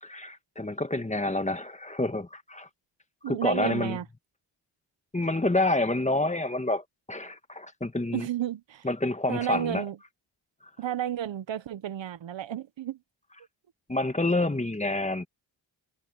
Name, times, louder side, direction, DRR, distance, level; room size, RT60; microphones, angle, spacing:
voice 1, 0.0-2.7 3.3-4.0 5.1-8.3 8.8-9.8 13.9-15.3, left 2 dB, 15° left, 1.8 m, -28 dB
voice 2, 3.2-4.0 8.1-8.9 9.3-10.0 10.8-13.0, right 11 dB, 65° right, 1.1 m, -32 dB
cardioid pair, 50°, 48 cm